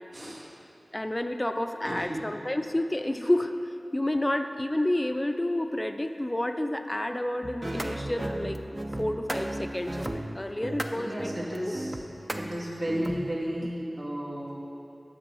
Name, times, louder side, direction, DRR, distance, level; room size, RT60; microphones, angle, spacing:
voice 1, 0.9-3.5 3.9-8.6 9.0-11.3 11.7-11.8, left 1 dB, 25° left, 7 dB, 0.4 m, -29 dB
voice 2, 1.8-2.2 10.9-11.9 12.4-14.6, equal, 75° right, -6 dB, 1.9 m, -33 dB
sound 1, 7.4-13.7, right 1 dB, 30° right, 0.5 m, -35 dB
8.8 x 6.8 x 5.4 m, 2.9 s
wide cardioid pair, 50°, 0 cm